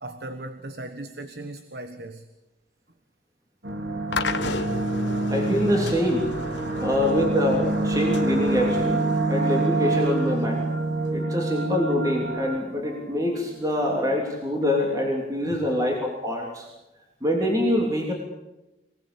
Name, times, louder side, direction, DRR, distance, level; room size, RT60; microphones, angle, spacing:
voice 1, 0.0-2.3 6.8-6.9 15.4-15.6, right 2 dB, 60° right, 9 dB, 1.4 m, -38 dB
sound 1, 3.6-13.4, right 2 dB, 80° right, 4.2 m, -27 dB
sound 2, 4.1-11.2, left 3 dB, 85° left, 1.6 m, -34 dB
voice 2, 5.3-6.3 6.8-10.6 11.1-16.7 17.2-18.1, left 1 dB, 20° right, 0 dB, 3.2 m, -25 dB
26.0 x 18.5 x 8.6 m, 1.0 s
head